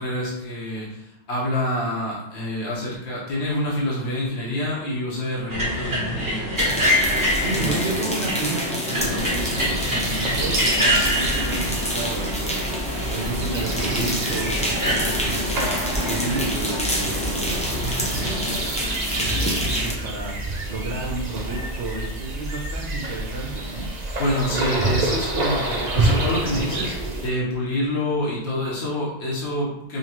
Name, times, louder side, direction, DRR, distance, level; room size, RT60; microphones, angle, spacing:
voice 1, 0.0-6.6 7.5-7.9 9.0-9.2 24.2-26.9 27.2-30.0, left 1 dB, 70° left, -5 dB, 1.4 m, -27 dB
sound 1, 5.5-18.6, equal, 20° right, 0.9 m, -26 dB
sound 2, 6.6-19.9, left 1 dB, 10° left, 0.4 m, -28 dB
voice 2, 7.3-23.9, right 3 dB, 70° right, -1 dB, 1.0 m, -32 dB
sound 3, 8.9-27.3, right 2 dB, 45° right, 0.7 m, -28 dB
5.4 x 2.5 x 2.9 m, 0.82 s
omnidirectional pair, 1.2 m